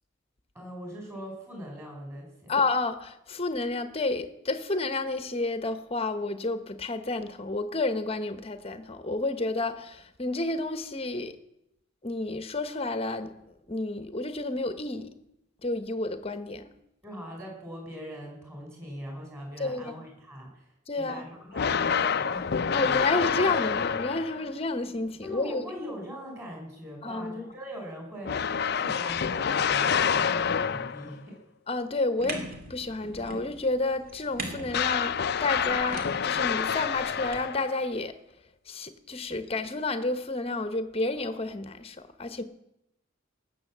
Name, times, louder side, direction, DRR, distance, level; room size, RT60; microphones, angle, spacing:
voice 1, 0.5-2.5 17.0-20.6 21.0-22.9 25.2-31.4, equal, 15° right, 5.1 m, -41 dB
voice 2, 2.5-11.3 12.0-13.3 13.7-15.1 15.6-16.7 19.6-20.1 20.9-21.2 22.7-25.6 27.0-27.5 31.7-38.2 38.7-42.4, left 2 dB, 30° left, 1.0 m, -30 dB
sound 1, 21.5-24.5 28.3-31.2 34.7-37.8, left 7 dB, 50° left, 0.5 m, -27 dB
sound 2, 32.2-37.4, right 2 dB, 45° right, 2.4 m, -41 dB
18.5 x 7.4 x 7.4 m
head